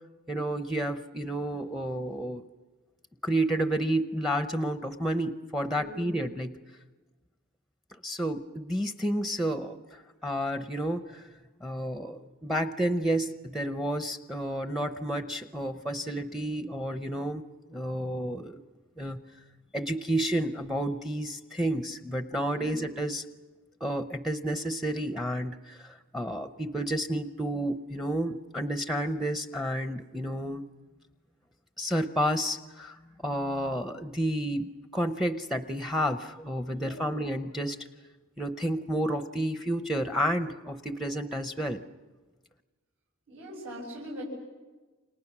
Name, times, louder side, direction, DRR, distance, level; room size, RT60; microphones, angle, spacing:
voice 1, 0.3-2.4 3.2-6.5 8.0-11.3 11.6-17.4 17.7-18.6 19.0-19.2 19.7-23.2 23.8-30.6 31.8-37.8 38.4-41.8, right 1 dB, ahead, 9 dB, 0.7 m, -31 dB
voice 2, 5.7-6.2 22.5-22.8 36.7-37.3 43.3-44.2, equal, 70° right, -4 dB, 6.8 m, -41 dB
29.0 x 26.5 x 6.1 m, 1.3 s
head